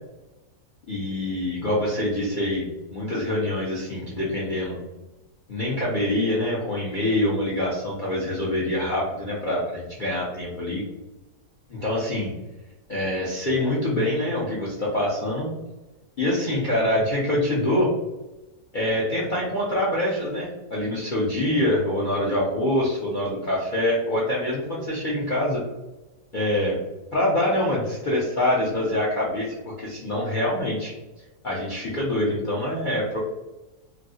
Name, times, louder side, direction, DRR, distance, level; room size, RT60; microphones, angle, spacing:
voice 1, 0.9-2.7 2.9-4.8 5.5-10.8 11.7-12.3 12.9-15.5 16.2-17.9 18.7-25.6 26.3-26.8 27.1-30.9 31.4-33.2, left 1 dB, 65° left, -6 dB, 0.4 m, -25 dB
3.1 x 2.7 x 2.7 m, 1.1 s
omnidirectional pair, 1.8 m